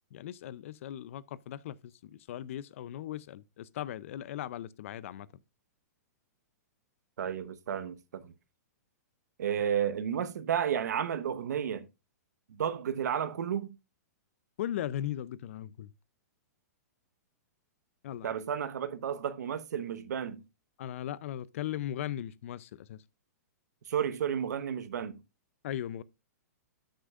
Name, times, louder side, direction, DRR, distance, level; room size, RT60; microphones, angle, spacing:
voice 1, 0.1-5.3 14.6-15.9 18.0-18.3 20.8-23.0 25.6-26.0, left 11 dB, 50° left, 0.4 m, -38 dB
voice 2, 7.2-8.3 9.4-11.9 12.6-13.8 18.2-20.4 23.9-25.2, right 8 dB, 75° right, 1.0 m, -32 dB
13.0 x 6.3 x 2.4 m
hypercardioid pair, 165°, 9 cm